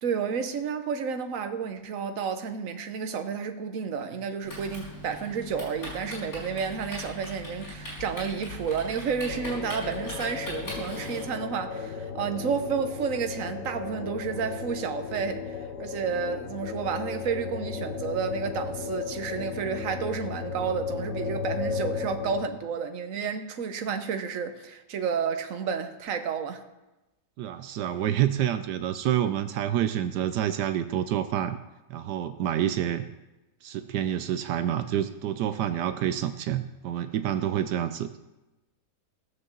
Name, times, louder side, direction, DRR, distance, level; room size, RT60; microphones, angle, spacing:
voice 1, 0.0-26.6, right 6 dB, 55° right, 1.3 m, -31 dB
Typing, 4.4-11.3, left 1 dB, 60° left, 6.0 m, -40 dB
sound 1, 9.3-22.5, left 5 dB, 80° left, 1.6 m, -35 dB
voice 2, 27.4-31.6 31.9-33.1 33.6-38.2, right 10 dB, 80° right, 1.2 m, -28 dB
17.0 x 6.5 x 7.4 m
omnidirectional pair, 1.8 m